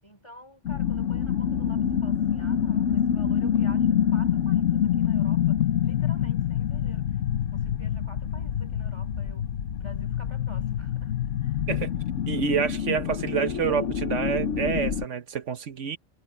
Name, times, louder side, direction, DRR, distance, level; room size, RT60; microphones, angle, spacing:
voice 1, 0.0-7.2 7.5-11.7, left 1 dB, 25° left, 5.7 m, -49 dB
sound 1, 0.6-15.0, left 9 dB, 90° left, 1.3 m, -26 dB
voice 2, 12.3-16.0, right 7 dB, 80° right, 1.4 m, -28 dB
omnidirectional pair, 1.2 m